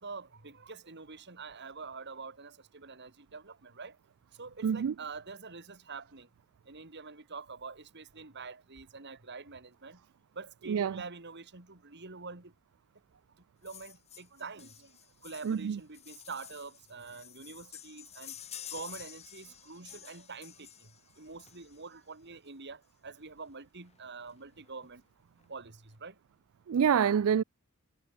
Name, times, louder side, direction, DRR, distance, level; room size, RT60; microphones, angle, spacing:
voice 1, 0.0-4.0 4.4-6.3 6.7-10.0 10.3-12.5 13.6-18.4 18.7-25.0 25.5-26.2, right 4 dB, 55° right, 2.5 m, -46 dB
voice 2, 4.6-4.9 10.7-11.0 15.4-15.8 26.7-27.4, right 7 dB, 70° right, 0.4 m, -27 dB
sound 1, 13.6-22.0 23.1-23.2 23.5-23.6 23.8-24.0 24.3-24.9 25.4-25.5, left 10 dB, 30° left, 0.9 m, -50 dB
head